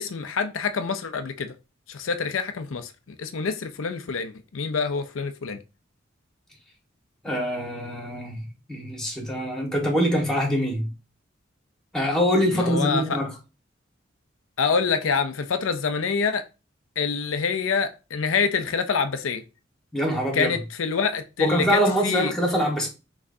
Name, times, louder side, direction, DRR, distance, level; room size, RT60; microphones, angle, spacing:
voice 1, 0.0-1.5 1.9-2.9 3.2-5.6 12.5-13.2 14.6-16.5 17.0-19.4 20.3-22.3, left 5 dB, 90° left, 0.6 m, -26 dB
voice 2, 7.2-10.9 11.9-13.3 19.9-20.5 21.4-22.9, equal, 5° left, 1.5 m, -24 dB
5.9 x 3.2 x 2.7 m
head